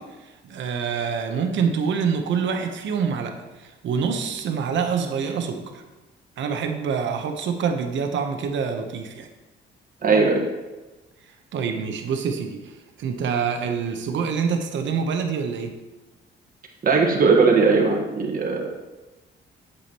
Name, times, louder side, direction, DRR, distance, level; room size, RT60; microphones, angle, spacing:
voice 1, 0.0-5.8 6.4-9.3 11.2-15.7, right 6 dB, 70° right, 5 dB, 1.0 m, -26 dB
voice 2, 10.0-10.4 16.8-18.7, right 4 dB, 45° right, 0 dB, 1.5 m, -18 dB
8.3 x 7.1 x 3.0 m, 1.1 s
cardioid pair, 90°, 20 cm